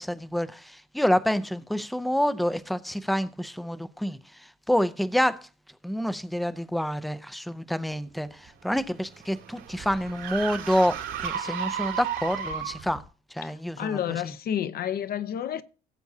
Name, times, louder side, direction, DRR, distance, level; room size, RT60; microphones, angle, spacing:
voice 1, 0.0-5.5 5.8-13.0 13.3-14.3, equal, ahead, 0.4 m, -28 dB
sound 1, 8.5-13.0, right 8 dB, 80° right, 2.3 m, -34 dB
voice 2, 13.4-15.6, left 10 dB, 50° left, 0.6 m, -30 dB
17.5 x 8.2 x 2.7 m
cardioid pair, 180°, 20 cm